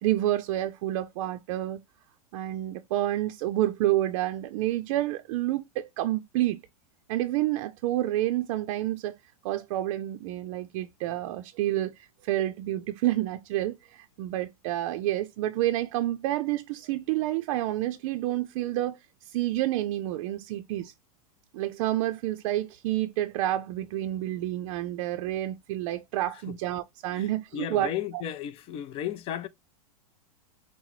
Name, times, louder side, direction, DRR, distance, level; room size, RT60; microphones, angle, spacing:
voice 1, 0.0-1.8 2.3-6.6 7.1-9.2 9.4-19.0 19.2-20.9 21.5-27.9, right 14 dB, 55° right, 0.5 m, -29 dB
voice 2, 27.5-29.5, left 10 dB, 30° left, 0.4 m, -34 dB
5.5 x 2.0 x 3.1 m
hypercardioid pair, 115°, 19 cm